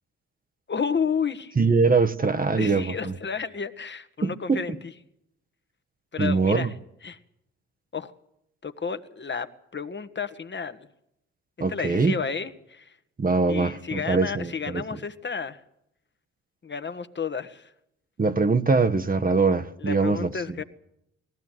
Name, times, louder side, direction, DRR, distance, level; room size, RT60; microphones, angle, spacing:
voice 1, 0.7-1.5 2.5-4.7 6.1-6.7 7.0-7.2 7.9-8.1 8.6-9.5 9.7-10.9 11.7-12.9 13.5-15.6 16.6-17.7 19.8-20.6, left 6 dB, 35° left, 1.5 m, -31 dB
voice 2, 1.6-3.1 4.2-4.6 6.2-6.7 11.6-12.1 13.2-14.8 18.2-20.3, right 4 dB, 25° right, 1.2 m, -22 dB
19.5 x 15.0 x 9.2 m
hypercardioid pair, 55°, 33 cm